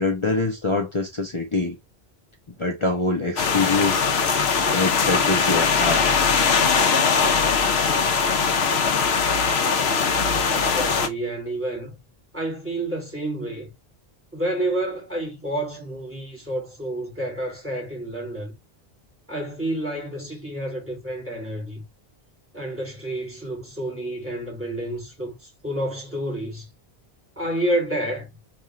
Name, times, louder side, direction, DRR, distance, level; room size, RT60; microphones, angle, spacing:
voice 1, 0.0-1.8 2.6-4.0 4.7-6.0, left 3 dB, 30° left, 0.9 m, -24 dB
sound 1, 3.4-11.1, left 5 dB, 80° left, 0.9 m, -21 dB
voice 2, 10.3-12.0 12.3-13.7 14.3-18.5 19.3-21.8 22.5-25.3 25.6-26.7 27.4-28.3, right 1 dB, 10° right, 2.2 m, -29 dB
3.6 x 2.6 x 4.2 m
omnidirectional pair, 1.0 m